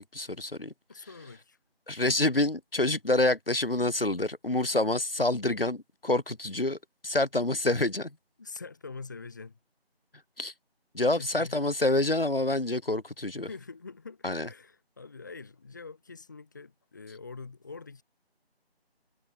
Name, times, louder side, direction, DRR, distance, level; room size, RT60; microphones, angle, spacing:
voice 1, 0.0-0.7 1.9-6.8 7.0-8.1 10.4-10.5 10.9-13.5 14.2-14.5, left 2 dB, 60° left, 5.5 m, -27 dB
voice 2, 0.9-1.6 8.4-9.5 11.1-11.6 13.4-18.0, left 4 dB, 20° left, 4.7 m, -44 dB
figure-of-eight pair, 175°, 32 cm